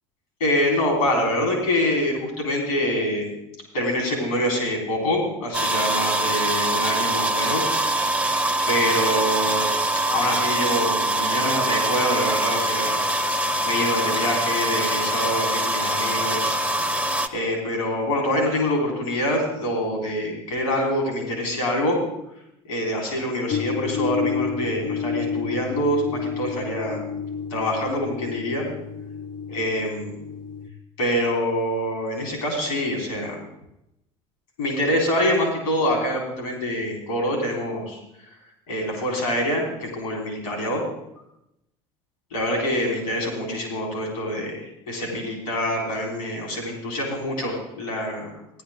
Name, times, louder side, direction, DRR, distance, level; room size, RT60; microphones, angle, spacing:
voice 1, 0.4-3.3 3.7-7.7 8.0-8.1 8.7-9.7 10.1-13.0 13.7-16.6 17.3-22.0 22.7-27.0 27.5-28.7 29.5-30.1 31.0-33.4 34.6-38.0 38.7-40.8 42.3-48.3, left 1 dB, 85° left, 0 dB, 3.9 m, -25 dB
sound 1, 5.5-17.3, right 1 dB, 10° right, 0.9 m, -23 dB
sound 2, 23.5-30.7, left 6 dB, 55° left, 0.8 m, -30 dB
15.0 x 11.0 x 3.7 m, 0.84 s
hypercardioid pair, 65°, 18 cm